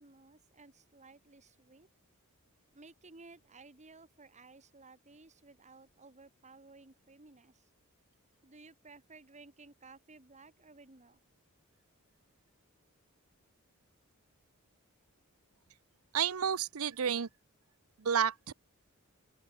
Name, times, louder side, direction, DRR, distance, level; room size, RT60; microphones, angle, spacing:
voice 1, 0.0-1.9 2.7-7.7 8.4-11.2, right 3 dB, 35° right, 2.2 m, -56 dB
voice 2, 16.1-17.3 18.0-18.5, right 7 dB, 75° right, 0.7 m, -30 dB
open air
head